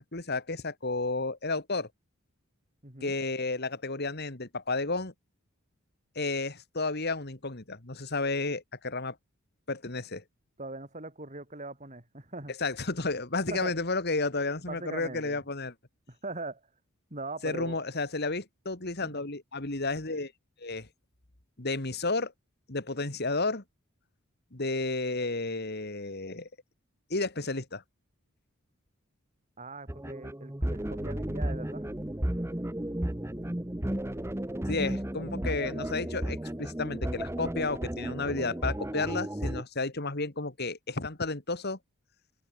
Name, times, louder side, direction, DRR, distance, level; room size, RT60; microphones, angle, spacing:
voice 1, 0.0-1.9 3.0-5.1 6.2-9.2 9.7-10.2 12.6-15.7 17.4-20.3 20.6-20.9 21.6-22.3 22.7-23.6 24.5-26.5 27.1-27.8 34.7-41.8, left 3 dB, 50° left, 2.3 m, -32 dB
voice 2, 2.8-3.1 10.6-12.5 13.5-13.7 14.7-15.4 16.1-16.7 17.1-17.8 19.0-19.2 29.6-31.9, right 2 dB, 35° right, 4.9 m, -41 dB
sound 1, 29.9-39.6, right 1 dB, 10° right, 0.9 m, -33 dB
open air
head